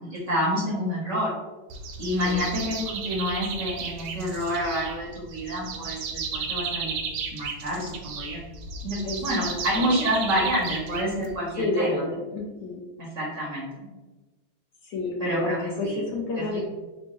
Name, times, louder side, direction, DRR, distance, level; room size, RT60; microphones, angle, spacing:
voice 1, 0.0-1.3 2.0-6.9 7.3-8.4 8.8-12.0 13.0-13.7 15.2-15.6 15.8-16.0 16.3-16.6, equal, 60° right, -4 dB, 0.8 m, -28 dB
sound 1, 1.7-11.5, right 5 dB, 75° right, 1.3 m, -34 dB
voice 2, 9.0-9.9 11.6-12.8 14.9-16.6, left 2 dB, 70° left, -2 dB, 1.2 m, -29 dB
4.5 x 2.1 x 3.0 m, 1.2 s
omnidirectional pair, 2.2 m